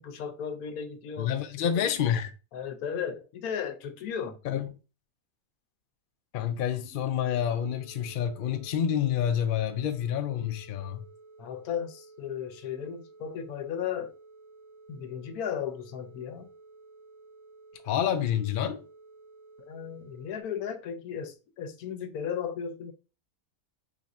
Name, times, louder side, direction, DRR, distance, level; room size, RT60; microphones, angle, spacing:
voice 1, 0.0-1.3 2.5-4.4 6.9-7.1 7.5-7.6 11.4-14.1 14.9-16.5 19.7-22.9, left 8 dB, 85° left, 1.2 m, -35 dB
voice 2, 1.2-2.3 4.4-4.7 6.3-11.0 17.8-18.9, left 9 dB, 70° left, 0.5 m, -28 dB
sound 1, 7.3-20.4, right 3 dB, 70° right, 1.6 m, -53 dB
3.9 x 2.5 x 4.1 m
omnidirectional pair, 1.5 m